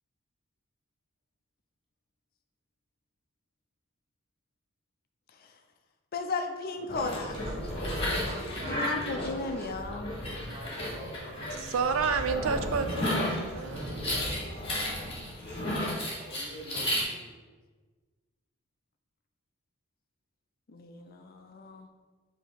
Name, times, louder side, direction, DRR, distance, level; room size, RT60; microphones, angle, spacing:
voice 1, 6.1-7.3 8.7-10.1 20.7-21.9, left 3 dB, 45° left, 5 dB, 0.4 m, -35 dB
voice 2, 6.8-13.0 16.1-17.4, right 2 dB, 25° right, 0 dB, 0.6 m, -46 dB
sound 1, 6.9-17.0, left 1 dB, 25° left, 1.3 m, -33 dB
voice 3, 11.5-14.1, right 5 dB, 75° right, 8 dB, 0.4 m, -30 dB
4.9 x 2.8 x 3.9 m, 1.4 s
head